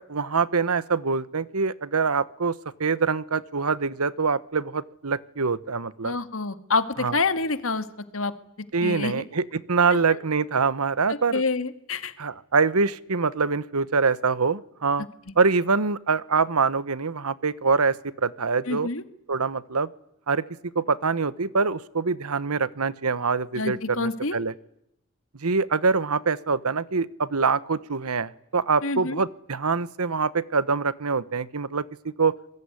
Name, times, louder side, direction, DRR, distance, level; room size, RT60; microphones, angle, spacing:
voice 1, 0.0-6.1 7.0-7.2 8.7-11.4 12.2-15.1 15.4-18.9 19.3-19.9 20.3-20.4 20.7-24.5 25.4-31.8 32.2-32.3, right 4 dB, 90° right, 18 dB, 1.1 m, -24 dB
voice 2, 6.0-7.8 8.1-8.3 8.8-9.2 10.1-10.2 11.1-12.1 18.7-19.0 23.6-24.4 28.8-29.2, left 3 dB, 70° left, 11 dB, 2.0 m, -27 dB
26.0 x 21.5 x 9.8 m, 0.77 s
head